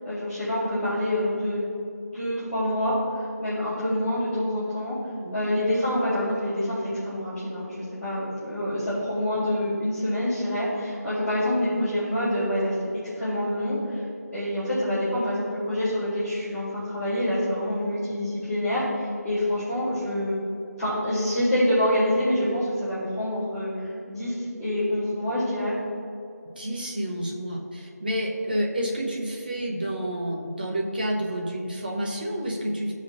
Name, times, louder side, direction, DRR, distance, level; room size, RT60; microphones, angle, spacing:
voice 1, 0.0-1.6 2.1-4.9 5.3-12.7 13.2-14.0 14.3-20.4 20.8-25.7, left 1 dB, ahead, -26 dB, 1.7 m, -26 dB
voice 2, 26.6-32.9, equal, 35° right, -1 dB, 0.9 m, -29 dB
15.0 x 5.2 x 2.7 m, 2.7 s
figure-of-eight pair, 175°, 9 cm